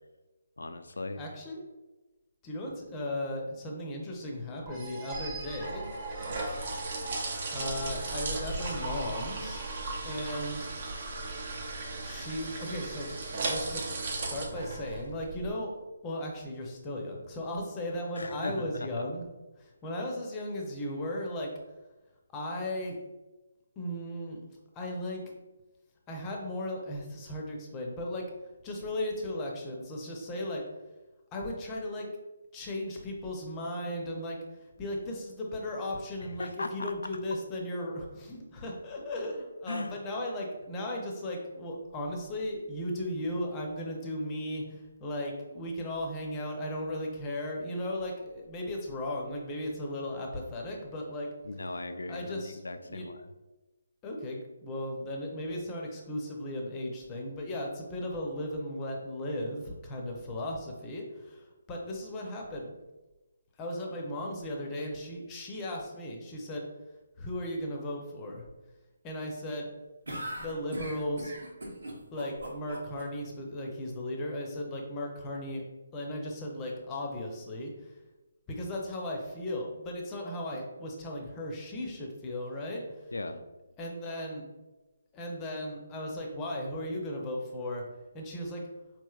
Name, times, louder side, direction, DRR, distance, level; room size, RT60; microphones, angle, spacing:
voice 1, 0.6-1.3 18.2-19.0 36.2-36.9 39.7-40.0 51.4-53.3 83.1-83.4, left 2 dB, 85° left, 8 dB, 0.3 m, -38 dB
voice 2, 1.2-1.6 2.4-5.9 7.0-7.1 7.5-9.7 10.0-10.7 12.0-13.8 14.1-15.7 16.0-19.2 19.6-21.5 22.3-23.0 23.8-24.4 24.7-25.2 26.1-28.3 28.6-30.6 31.3-32.1 32.5-51.3 52.1-53.1 54.0-62.7 63.6-66.7 67.2-68.4 69.0-69.8 70.4-71.3 72.1-75.6 75.9-77.9 78.5-82.9 83.8-84.5 85.1-87.8 88.1-88.6, left 1 dB, 20° left, 0 dB, 0.6 m, -36 dB
sound 1, 4.7-10.1, right 2 dB, 15° right, 0.8 m, -43 dB
sound 2, 5.1-15.5, right 2 dB, 45° right, 0.6 m, -36 dB
sound 3, 70.1-73.0, right 1 dB, 90° right, 1.0 m, -39 dB
4.1 x 3.1 x 2.3 m, 1.1 s
hypercardioid pair, 160°, 0 cm